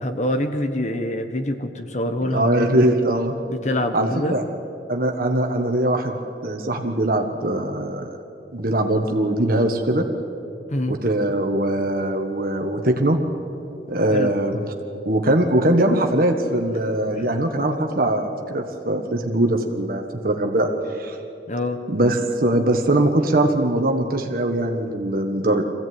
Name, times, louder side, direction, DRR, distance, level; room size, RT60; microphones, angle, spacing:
voice 1, 0.0-3.0 3.5-4.4 10.7-10.9 14.1-14.3 17.1-17.3 21.5-21.8, left 1 dB, 40° left, 7 dB, 1.1 m, -25 dB
voice 2, 2.3-3.3 3.9-4.4 4.9-6.2 6.4-8.1 8.5-10.1 10.9-13.2 13.9-14.6 15.0-20.7 20.9-21.2 21.9-25.6, right 1 dB, 55° right, 4 dB, 1.5 m, -21 dB
23.5 x 16.0 x 9.5 m, 2.8 s
head